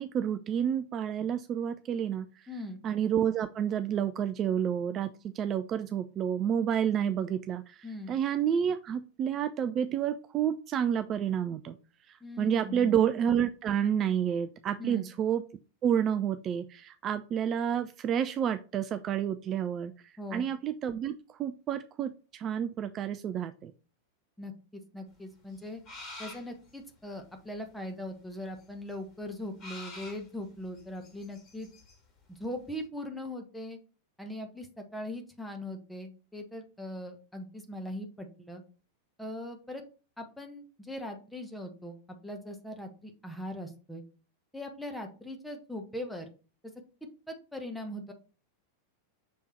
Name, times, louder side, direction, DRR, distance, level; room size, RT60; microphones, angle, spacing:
voice 1, 0.0-2.5 2.8-11.7 12.1-15.4 15.8-19.9 20.3-23.7, right 9 dB, 30° right, 10 dB, 0.4 m, -30 dB
voice 2, 2.5-2.8 7.8-8.1 12.2-13.0 14.8-15.1 20.2-20.5 24.4-25.8 26.2-31.7 32.3-33.8 34.2-38.6 39.2-39.8 40.2-44.0 44.5-46.3 46.6-46.7 47.0-48.1, left 1 dB, 5° left, 3 dB, 1.1 m, -40 dB
sound 1, 25.5-26.7 28.6-28.7 28.9-29.0 29.6-32.0 32.4-32.5 32.7-32.8, left 2 dB, 35° left, 2.5 m, -46 dB
6.3 x 3.5 x 4.2 m, 0.35 s
figure-of-eight pair, 90°, 0 cm